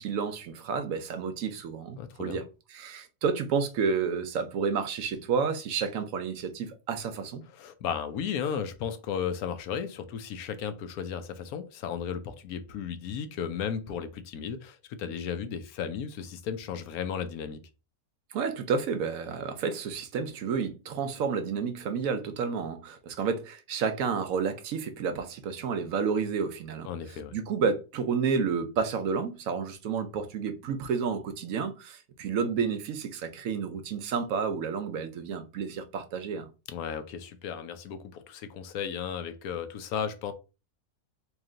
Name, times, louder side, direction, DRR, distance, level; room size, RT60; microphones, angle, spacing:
voice 1, 0.0-2.4 2.7-7.4 18.3-26.9 27.3-36.5, right 6 dB, 70° right, 0.9 m, -30 dB
voice 2, 2.0-2.4 7.5-17.6 26.8-27.3 36.7-40.3, left 7 dB, 75° left, 1.0 m, -35 dB
3.2 x 3.0 x 3.7 m
omnidirectional pair, 1.6 m